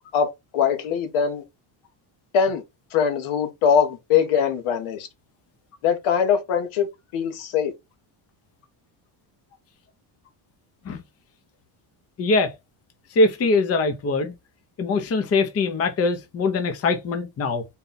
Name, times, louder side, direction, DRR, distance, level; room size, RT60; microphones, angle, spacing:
voice 1, 0.1-1.4 2.3-2.6 2.9-5.1 5.8-6.9 7.1-7.7, left 7 dB, 85° left, 1.1 m, -22 dB
voice 2, 12.2-12.5 13.1-14.3 14.8-17.7, left 3 dB, 30° left, 0.6 m, -22 dB
4.0 x 2.3 x 3.9 m
cardioid pair, 155°, 48 cm